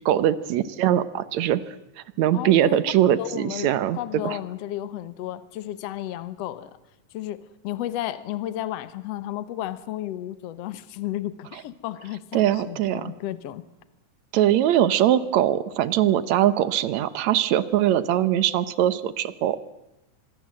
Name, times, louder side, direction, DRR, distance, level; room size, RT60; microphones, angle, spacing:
voice 1, 0.1-1.6 2.2-4.0 4.2-4.4 12.3-13.1 14.3-19.6, right 11 dB, 70° right, 15 dB, 2.2 m, -21 dB
voice 2, 2.3-2.8 3.2-6.8 7.1-13.6, left 13 dB, 65° left, 14 dB, 2.0 m, -33 dB
25.5 x 22.0 x 7.7 m, 0.92 s
omnidirectional pair, 3.5 m